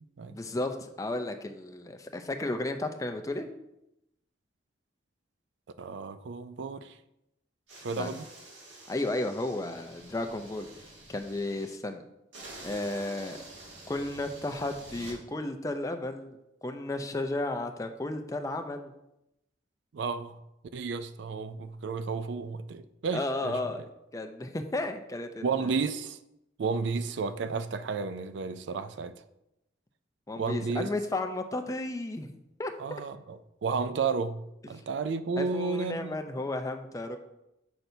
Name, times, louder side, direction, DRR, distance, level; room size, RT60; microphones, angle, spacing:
voice 1, 0.3-3.5 7.9-8.2 8.9-10.7 11.1-12.0 12.6-13.4 13.9-18.9 23.1-23.8 24.1-25.7 30.3-32.3 32.6-32.7 35.4-37.2, left 2 dB, 15° left, 0.4 m, -33 dB
voice 2, 5.8-7.0 7.8-8.3 19.9-20.4 20.7-23.6 25.4-26.2 26.6-29.1 30.4-30.9 32.8-34.4 34.7-36.2, right 4 dB, 65° right, 0.4 m, -32 dB
sound 1, 7.7-11.7 12.3-15.2, right 2 dB, 85° right, 1.9 m, -48 dB
6.6 x 5.9 x 2.7 m
head